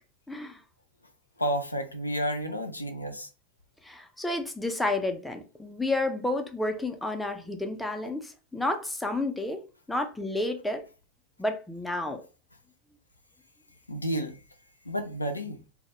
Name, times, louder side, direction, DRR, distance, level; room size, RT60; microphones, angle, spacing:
voice 1, 0.3-0.6 3.8-9.6 9.9-10.8 11.4-12.2, left 2 dB, 5° left, 0.4 m, -30 dB
voice 2, 1.4-3.3 13.9-14.4 14.9-15.6, equal, 85° left, 0.3 m, -31 dB
2.2 x 2.0 x 2.8 m
figure-of-eight pair, 90°, 0 cm